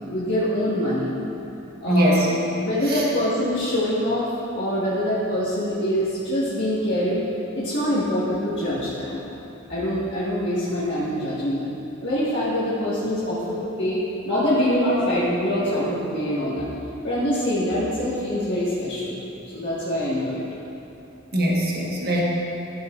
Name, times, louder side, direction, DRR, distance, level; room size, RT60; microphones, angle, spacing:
voice 1, 0.1-1.1 1.8-2.3 2.6-4.3 4.5-7.2 7.5-9.4 9.7-11.7 12.0-14.0 14.2-16.7 17.0-19.1 19.5-20.4, equal, 60° left, -12 dB, 1.7 m, -24 dB
voice 2, 1.9-2.3 2.9-3.0 21.3-22.2, right 1 dB, 50° right, -4 dB, 1.4 m, -21 dB
13.5 x 6.7 x 2.5 m, 2.9 s
head